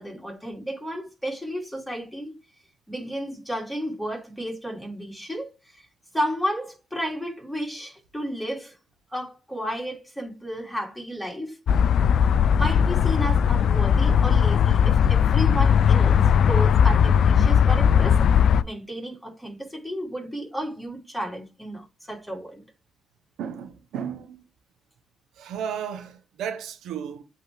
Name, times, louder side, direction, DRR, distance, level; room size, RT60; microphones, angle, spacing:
voice 1, 0.0-2.3 2.9-5.9 6.1-8.8 9.1-11.6 12.5-18.3 18.6-22.6, equal, ahead, 3.2 m, -32 dB
sound 1, 11.7-18.6, left 8 dB, 60° left, 0.4 m, -18 dB
voice 2, 23.4-24.4 25.4-27.2, right 8 dB, 80° right, 0.9 m, -34 dB
8.0 x 3.7 x 3.4 m
cardioid pair, 90°, 0 cm